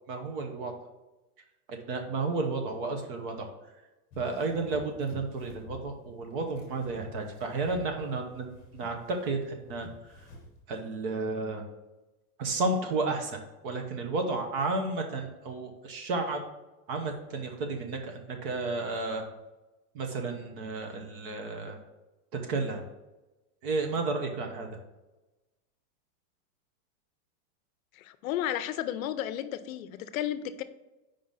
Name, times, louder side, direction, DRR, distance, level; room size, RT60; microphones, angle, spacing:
voice 1, 0.1-0.7 1.7-3.5 4.2-10.2 10.7-11.6 12.4-13.4 13.6-16.4 16.9-19.3 19.9-21.8 22.5-22.8 23.6-24.7, right 3 dB, 40° right, 4 dB, 0.9 m, -32 dB
sound 1, 4.1-10.6, left 2 dB, 20° left, 0.9 m, -49 dB
voice 2, 27.9-30.6, left 11 dB, 70° left, 11 dB, 0.6 m, -33 dB
5.1 x 3.8 x 5.5 m, 1.1 s
supercardioid pair, 175°, 43 cm